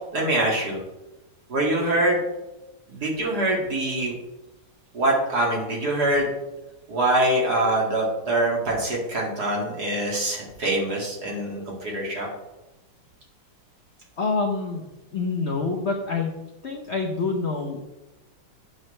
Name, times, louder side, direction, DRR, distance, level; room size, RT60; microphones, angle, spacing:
voice 1, 0.1-0.8 1.5-2.2 2.9-4.1 4.9-6.3 6.9-12.3, right 1 dB, 50° right, -2 dB, 2.6 m, -24 dB
voice 2, 14.2-14.9 15.1-16.3 16.6-17.8, left 4 dB, 55° left, 1 dB, 0.7 m, -26 dB
9.2 x 7.7 x 3.2 m, 1.0 s
omnidirectional pair, 2.3 m